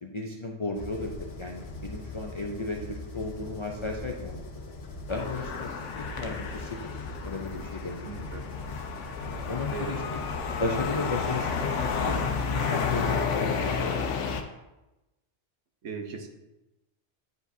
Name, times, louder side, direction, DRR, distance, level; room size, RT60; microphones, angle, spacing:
voice 1, 0.0-4.4 5.1-6.9 7.2-8.3 9.2-10.0 10.6-14.4, left 3 dB, 40° left, 0 dB, 0.4 m, -35 dB
sound 1, 0.7-13.2, left 2 dB, 60° left, 1.1 m, -41 dB
sound 2, 5.1-14.4, left 5 dB, 85° left, 1.0 m, -31 dB
voice 2, 8.1-8.5 9.7-10.2 15.8-16.3, right 4 dB, 85° right, 3 dB, 1.2 m, -38 dB
9.3 x 4.9 x 2.7 m, 1.0 s
omnidirectional pair, 1.2 m